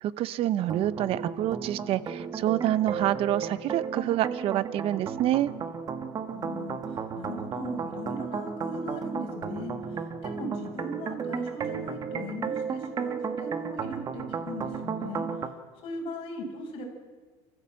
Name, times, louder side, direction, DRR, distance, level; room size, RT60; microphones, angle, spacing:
voice 1, 0.0-5.5, right 13 dB, 50° right, 17 dB, 0.8 m, -27 dB
sound 1, 0.6-15.5, right 6 dB, 30° right, 1.5 m, -34 dB
voice 2, 6.3-15.2 15.8-16.8, left 1 dB, 45° left, 0 dB, 6.4 m, -39 dB
28.5 x 15.0 x 7.7 m, 1.4 s
cardioid pair, 150°, 13 cm